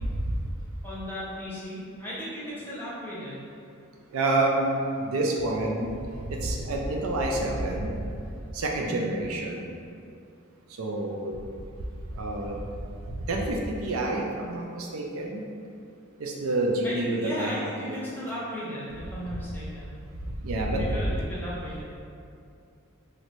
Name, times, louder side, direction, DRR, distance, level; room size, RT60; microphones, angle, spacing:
voice 1, 0.8-3.4 8.8-9.1 16.8-19.9 20.8-21.8, equal, 10° left, -9 dB, 0.7 m, -36 dB
voice 2, 4.1-5.9 6.3-8.0 8.5-9.7 10.8-11.4 12.2-12.6 13.3-15.4 16.2-18.0 20.4-20.9, right 2 dB, 75° right, 0 dB, 0.4 m, -28 dB
3.0 x 2.6 x 3.0 m, 2.5 s
head